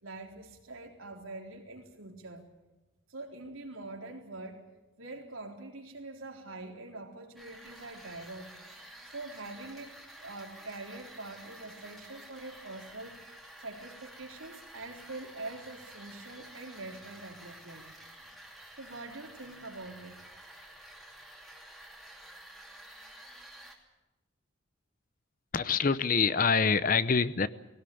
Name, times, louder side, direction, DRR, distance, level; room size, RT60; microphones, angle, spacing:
voice 1, 0.0-2.5 3.1-4.6 5.0-8.5 9.1-13.2 13.6-17.9 18.8-20.2, right 2 dB, 80° right, 2 dB, 3.9 m, -44 dB
sound 1, 7.4-23.8, right 1 dB, ahead, 2.8 m, -51 dB
voice 2, 25.5-27.5, left 5 dB, 40° left, 16 dB, 0.7 m, -25 dB
20.0 x 18.0 x 8.7 m, 1.1 s
head